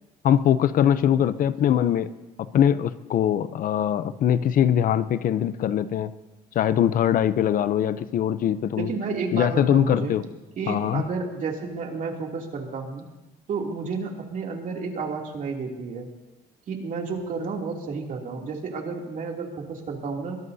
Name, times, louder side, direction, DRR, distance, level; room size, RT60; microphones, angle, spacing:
voice 1, 0.2-2.1 2.4-6.1 6.5-8.9 9.3-10.3 10.7-11.0, left 10 dB, 55° left, 14 dB, 0.6 m, -22 dB
voice 2, 8.8-10.1 10.6-13.0 13.5-16.1 16.7-20.4, right 4 dB, 50° right, 0 dB, 2.8 m, -31 dB
24.0 x 18.5 x 2.8 m, 1.1 s
cardioid pair, 110°, 17 cm